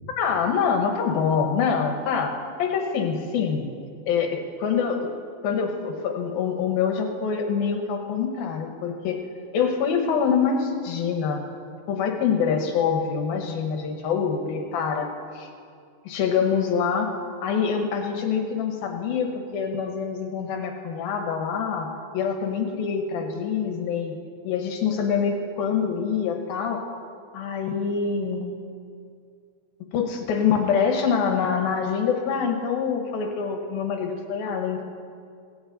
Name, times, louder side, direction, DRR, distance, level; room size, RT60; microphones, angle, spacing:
voice 1, 0.2-2.3 2.6-3.7 4.1-5.1 5.4-9.2 9.5-11.4 11.9-15.5 16.1-17.1 17.4-19.3 19.5-24.2 24.4-26.9 27.3-28.6 29.9-34.8, left 6 dB, 70° left, 3 dB, 2.4 m, -25 dB
17.5 x 17.0 x 4.0 m, 2.4 s
omnidirectional pair, 5.4 m